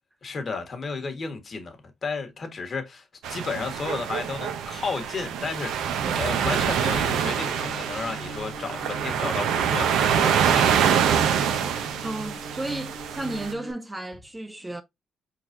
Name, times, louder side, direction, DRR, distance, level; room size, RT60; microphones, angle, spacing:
voice 1, 0.2-1.8 2.0-10.7, left 4 dB, 45° left, 1.5 m, -33 dB
sound 1, 3.2-13.5, right 8 dB, 85° right, 0.7 m, -25 dB
sound 2, 6.0-13.7, right 2 dB, 50° right, 1.7 m, -41 dB
voice 2, 12.0-14.8, right 2 dB, 10° right, 0.5 m, -34 dB
4.7 x 3.9 x 2.6 m
cardioid pair, 90°, 0 cm